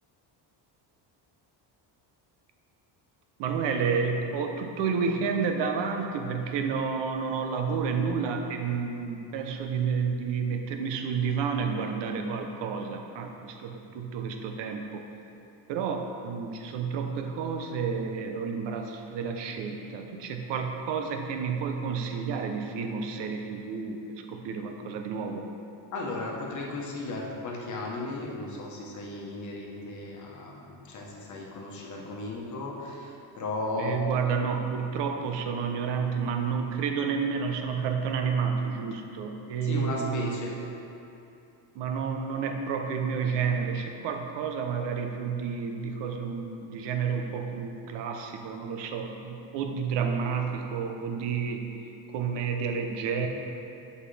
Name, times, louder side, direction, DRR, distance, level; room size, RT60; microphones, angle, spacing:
voice 1, 3.4-15.0 15.7-25.5 33.8-40.4 41.7-51.7 52.1-53.3, right 6 dB, 75° right, 4 dB, 0.8 m, -30 dB
voice 2, 25.9-34.1 39.6-40.5, left 2 dB, 40° left, -2 dB, 1.1 m, -35 dB
8.2 x 5.4 x 3.3 m, 2.7 s
cardioid pair, 155°, 43 cm